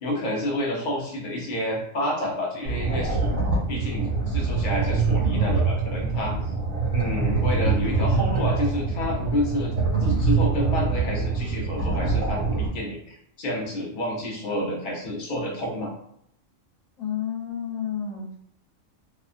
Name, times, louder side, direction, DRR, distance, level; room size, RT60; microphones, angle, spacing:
voice 1, 0.0-3.3 3.7-6.4 6.9-15.9, left 1 dB, 45° left, -1 dB, 0.7 m, -29 dB
sound 1, 2.7-12.7, right 4 dB, 65° right, 1.2 m, -24 dB
voice 2, 17.0-18.4, left 8 dB, 75° left, -4 dB, 1.1 m, -30 dB
2.8 x 2.3 x 2.5 m, 0.70 s
omnidirectional pair, 1.4 m